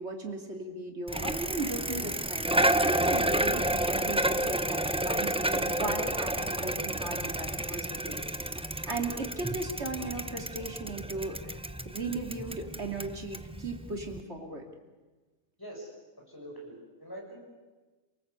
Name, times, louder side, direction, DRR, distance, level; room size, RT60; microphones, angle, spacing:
voice 1, 0.0-8.2 8.9-14.7, right 2 dB, 50° right, 3 dB, 3.2 m, -37 dB
Bicycle, 1.1-14.2, right 1 dB, 10° right, 0.4 m, -30 dB
voice 2, 15.6-15.9 16.3-17.4, right 1 dB, 15° left, -1 dB, 7.3 m, -44 dB
28.0 x 18.5 x 8.3 m, 1.2 s
omnidirectional pair, 1.5 m